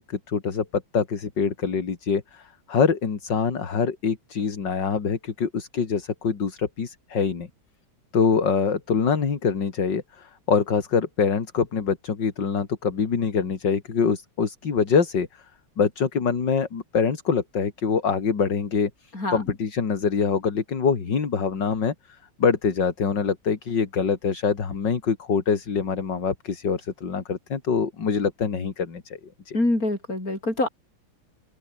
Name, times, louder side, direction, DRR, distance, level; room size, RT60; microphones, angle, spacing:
voice 1, 0.0-7.5 8.1-15.3 15.8-18.9 19.3-21.9 22.4-29.2 29.5-29.6, left 5 dB, 60° left, 3.1 m, -24 dB
voice 2, 29.5-30.7, left 2 dB, 45° left, 8.7 m, -25 dB
open air
omnidirectional pair, 2.2 m